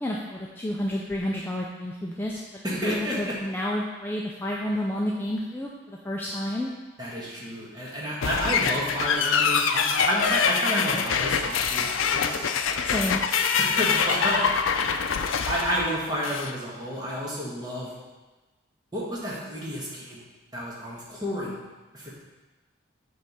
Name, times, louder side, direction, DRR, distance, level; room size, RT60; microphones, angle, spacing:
voice 1, 0.0-2.4 2.8-6.7 12.8-13.2, left 1 dB, 10° left, -3 dB, 0.4 m, -30 dB
voice 2, 2.6-3.4 7.0-12.5 13.6-14.6 15.4-17.9 18.9-20.2 20.5-21.6 21.9-22.1, equal, 20° right, -5 dB, 1.4 m, -30 dB
sound 1, 8.2-16.5, left 6 dB, 80° left, 0.4 m, -25 dB
7.6 x 3.4 x 5.5 m, 1.2 s
head